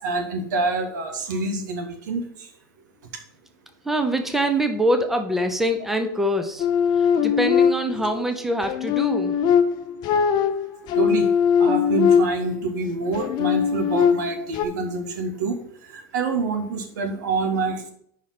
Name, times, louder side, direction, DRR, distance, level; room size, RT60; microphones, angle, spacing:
voice 1, 0.0-2.2 10.9-11.3 11.6-15.6 15.9-17.9, right 3 dB, 70° right, 6 dB, 1.4 m, -26 dB
voice 2, 3.8-6.7 7.0-9.3, right 1 dB, 5° right, 6 dB, 0.8 m, -24 dB
sound 1, 6.6-8.1 8.6-12.6 13.1-14.7, left 7 dB, 45° left, 0.7 m, -21 dB
5.6 x 4.8 x 5.9 m, 0.65 s
hypercardioid pair, 90°, 10 cm